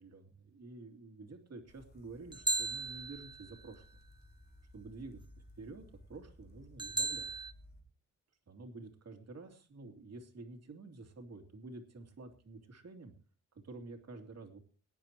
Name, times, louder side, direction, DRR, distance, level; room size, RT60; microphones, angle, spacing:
voice 1, 0.0-3.8 4.7-5.2 5.6-5.8 6.1-7.4 8.5-13.1 13.5-14.6, right 3 dB, 50° right, 5 dB, 2.8 m, -49 dB
sound 1, 1.7-7.8, left 1 dB, 30° left, 2.9 m, -58 dB
sound 2, 2.3-3.6 6.8-7.5, right 3 dB, 15° right, 0.5 m, -36 dB
23.0 x 10.0 x 3.0 m, 0.35 s
wide cardioid pair, 125°, 32 cm